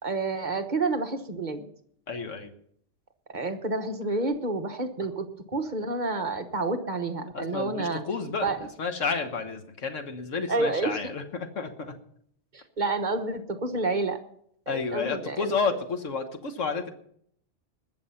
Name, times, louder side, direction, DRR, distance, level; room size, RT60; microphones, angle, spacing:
voice 1, 0.0-1.7 3.3-8.0 8.4-8.7 10.5-11.0 12.5-14.2 14.7-15.5, right 3 dB, 40° right, 5 dB, 1.3 m, -29 dB
voice 2, 2.1-2.5 7.3-8.5 8.8-11.9 14.7-16.9, left 4 dB, 90° left, 6 dB, 1.6 m, -31 dB
20.5 x 7.2 x 5.7 m, 0.66 s
omnidirectional pair, 1.3 m